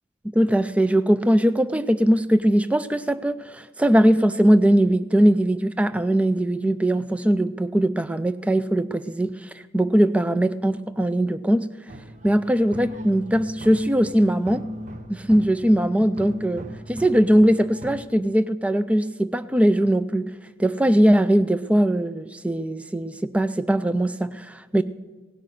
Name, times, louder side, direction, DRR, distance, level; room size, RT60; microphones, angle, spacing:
voice 1, 0.2-11.7 12.2-14.7 15.1-20.3 20.6-24.8, right 1 dB, 5° right, 12 dB, 0.3 m, -20 dB
sound 1, 11.9-18.0, equal, 35° right, 0.7 m, -39 dB
17.5 x 5.9 x 9.0 m, 1.3 s
head